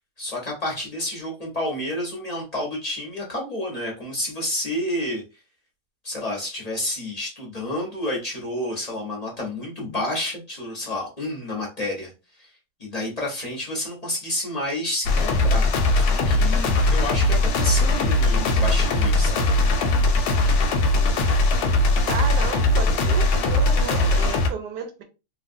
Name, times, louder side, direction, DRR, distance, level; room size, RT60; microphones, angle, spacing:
voice 1, 0.2-5.2 6.0-12.1 12.4-12.5 12.8-15.6 15.9-19.5, left 1 dB, 30° left, 0.8 m, -30 dB
sound 1, 15.0-24.5, left 2 dB, 80° left, 1.1 m, -20 dB
voice 2, 22.1-25.0, right 6 dB, 90° right, 1.3 m, -32 dB
3.2 x 2.3 x 2.5 m
omnidirectional pair, 1.7 m